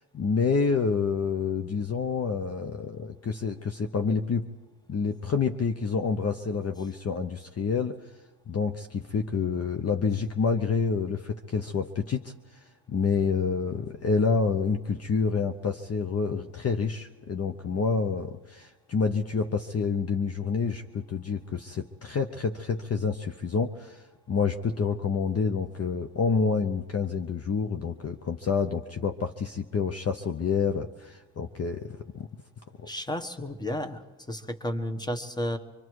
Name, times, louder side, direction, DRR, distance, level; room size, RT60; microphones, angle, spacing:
voice 1, 0.1-4.5 4.9-8.1 8.5-32.3, left 5 dB, 35° left, 6 dB, 0.9 m, -28 dB
voice 2, 32.9-34.0 34.3-35.6, left 1 dB, 10° left, 10 dB, 1.3 m, -32 dB
25.0 x 23.0 x 4.8 m, 1.2 s
cardioid pair, 80°, 41 cm